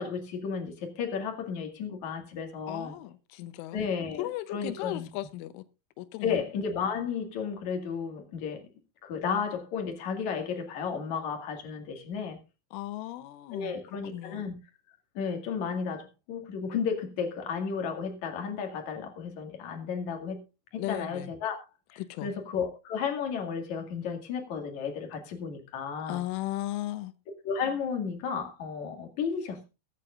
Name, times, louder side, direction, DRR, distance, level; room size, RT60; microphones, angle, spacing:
voice 1, 0.0-2.9 3.7-5.1 6.2-8.7 9.0-12.4 13.5-14.5 15.1-20.4 20.7-21.6 21.9-26.2 27.4-29.7, left 6 dB, 50° left, 2.8 m, -33 dB
voice 2, 2.7-5.7 6.0-6.4 12.7-14.4 20.8-21.3 22.0-22.3 26.1-27.1, left 15 dB, 90° left, 3.3 m, -36 dB
21.5 x 9.5 x 2.5 m
omnidirectional pair, 5.5 m